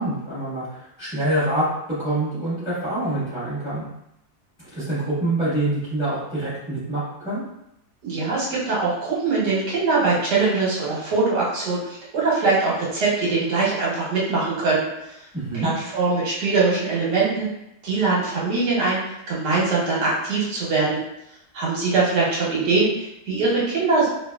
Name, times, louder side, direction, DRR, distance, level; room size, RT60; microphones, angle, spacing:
voice 1, 0.0-3.8 4.6-7.4 15.3-15.7, right 1 dB, 5° right, -13 dB, 1.2 m, -26 dB
voice 2, 8.0-15.2 15.6-17.5 17.8-19.0 19.3-21.0 21.5-24.1, right 3 dB, 80° right, -5 dB, 1.6 m, -22 dB
3.1 x 2.6 x 2.3 m, 0.82 s
omnidirectional pair, 1.8 m